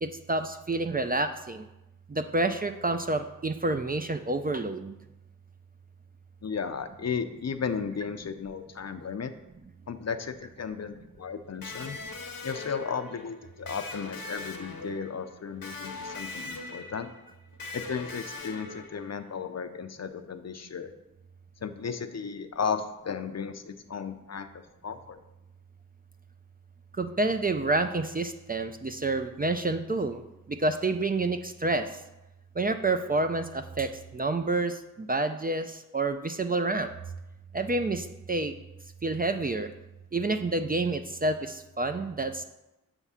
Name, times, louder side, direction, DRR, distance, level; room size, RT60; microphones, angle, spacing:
voice 1, 0.0-1.6 2.1-5.0 27.0-30.2 30.5-31.9 32.6-36.9 37.5-38.5 39.0-39.7 40.1-42.4, right 2 dB, 25° right, 8 dB, 0.4 m, -28 dB
voice 2, 6.4-9.3 9.9-12.0 12.4-17.1 17.7-20.9 21.6-24.5 24.8-25.2, left 6 dB, 50° left, 9 dB, 0.5 m, -34 dB
Electric guitar, 11.6-19.3, left 3 dB, 75° left, 0.9 m, -41 dB
7.1 x 3.6 x 5.6 m, 0.95 s
wide cardioid pair, 75°, 34 cm